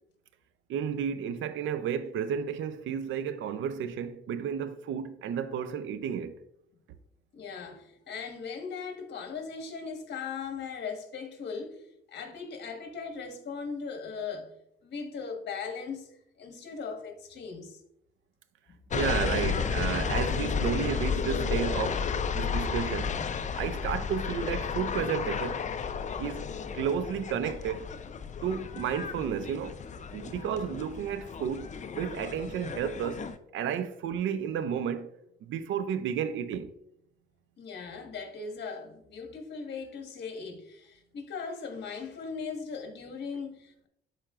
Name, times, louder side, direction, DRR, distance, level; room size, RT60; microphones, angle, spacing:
voice 1, 0.7-6.4 18.9-22.0 22.3-23.1 23.6-25.7 26.2-26.5 26.7-27.9 28.4-29.8 30.1-31.7 32.0-33.3 33.5-35.1 35.4-36.7, right 8 dB, 75° right, 0.6 m, -32 dB
voice 2, 7.3-11.8 12.1-14.5 14.8-17.8 18.7-18.8 37.6-43.9, left 5 dB, 60° left, 1.5 m, -39 dB
sound 1, 18.9-33.4, left 6 dB, 35° left, 0.5 m, -32 dB
11.5 x 4.4 x 2.5 m
cardioid pair, 90°, 20 cm